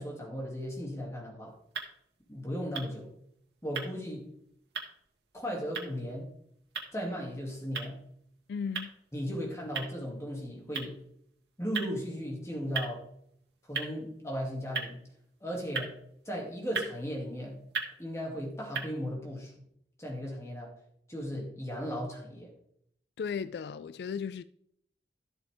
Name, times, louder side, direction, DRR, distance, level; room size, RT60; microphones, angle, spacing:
voice 1, 0.0-1.5 2.3-3.1 3.6-4.3 5.3-6.3 6.9-8.0 9.1-11.0 11.6-13.0 13.7-15.0 15.4-15.9 16.3-17.6 18.0-19.6 20.0-20.7 21.1-22.5, equal, 15° left, 2.5 m, -36 dB
sound 1, 1.4-18.8, right 5 dB, 75° right, 1.7 m, -42 dB
voice 2, 8.5-8.9 23.2-24.4, left 6 dB, 75° left, 0.3 m, -35 dB
13.0 x 7.8 x 3.5 m
head